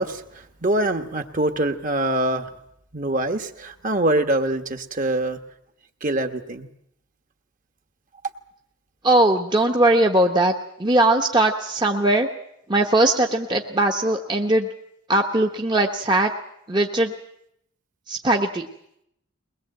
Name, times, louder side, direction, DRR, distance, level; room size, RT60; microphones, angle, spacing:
voice 1, 0.0-2.5 2.9-5.4 6.0-6.7, right 1 dB, 40° right, 7 dB, 1.4 m, -24 dB
voice 2, 9.0-10.5 10.8-12.3 12.7-14.7 15.1-16.3 16.7-17.1 18.1-18.7, right 1 dB, 20° right, 2 dB, 1.0 m, -19 dB
22.0 x 20.5 x 7.9 m, 0.76 s
head